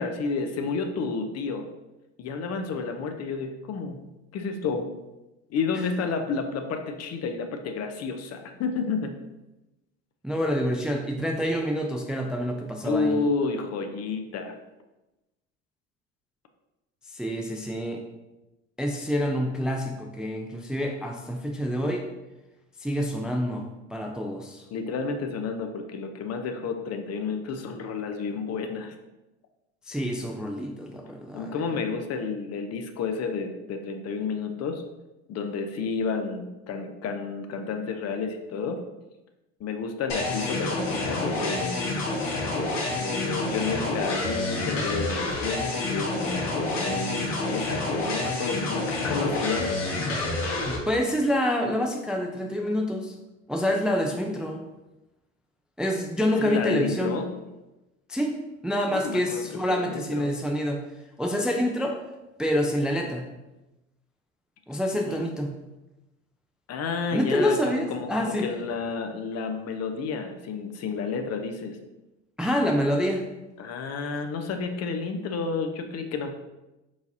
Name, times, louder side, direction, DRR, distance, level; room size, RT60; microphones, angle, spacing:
voice 1, 0.0-1.7 2.2-4.0 4.3-4.9 5.5-9.1 12.8-14.5 24.7-28.9 31.3-34.8 35.3-38.8 39.6-41.9 43.0-49.8 56.4-57.3 58.9-60.3 65.0-65.3 66.7-71.8 73.6-76.3, left 4 dB, 45° left, 6 dB, 0.6 m, -31 dB
voice 2, 10.2-13.2 17.1-18.0 18.8-22.1 22.8-24.6 29.9-31.6 50.7-53.2 53.5-54.6 55.8-57.2 58.1-58.3 58.6-60.8 61.2-62.0 62.4-63.3 64.7-65.5 67.1-68.5 72.4-73.2, equal, ahead, 1 dB, 0.4 m, -27 dB
sound 1, 40.1-50.8, left 2 dB, 80° left, 1.4 m, -28 dB
4.8 x 4.0 x 2.7 m, 1.0 s
hypercardioid pair, 75°, 37 cm